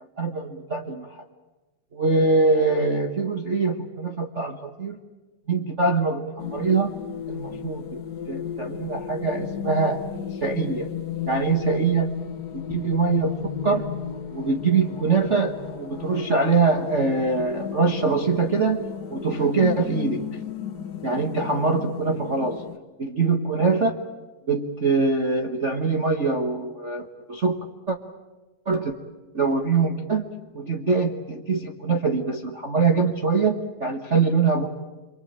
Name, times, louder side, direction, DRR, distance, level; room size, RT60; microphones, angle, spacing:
voice 1, 0.2-1.2 1.9-5.0 5.5-6.9 7.3-8.0 8.3-10.0 10.4-10.9 11.2-12.2 12.5-13.9 14.3-20.4 21.0-22.6 23.0-23.9 24.5-27.6 27.9-28.0 28.7-28.9 29.3-30.2 30.5-34.7, right 4 dB, 55° right, 1 dB, 0.7 m, -23 dB
sound 1, 6.4-22.8, left 9 dB, 60° left, 1.0 m, -34 dB
27.0 x 24.0 x 8.8 m, 1.2 s
omnidirectional pair, 3.5 m